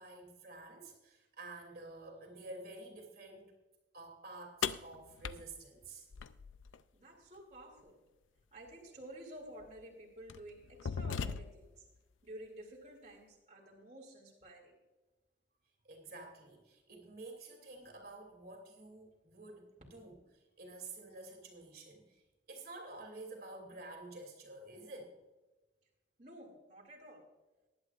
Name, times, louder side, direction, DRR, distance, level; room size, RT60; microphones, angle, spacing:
voice 1, 0.0-3.5 3.9-6.1 15.8-22.2 22.5-25.2, right 2 dB, 50° right, 1 dB, 2.7 m, -50 dB
sound 1, 4.6-6.8 8.7-8.8 9.6-9.8 10.3-11.8, left 6 dB, 85° left, 0.5 m, -39 dB
voice 2, 6.9-8.0 8.5-11.8 12.2-14.7 26.2-27.2, right 1 dB, 35° right, -3 dB, 2.5 m, -52 dB
20.0 x 11.0 x 2.5 m, 1.1 s
head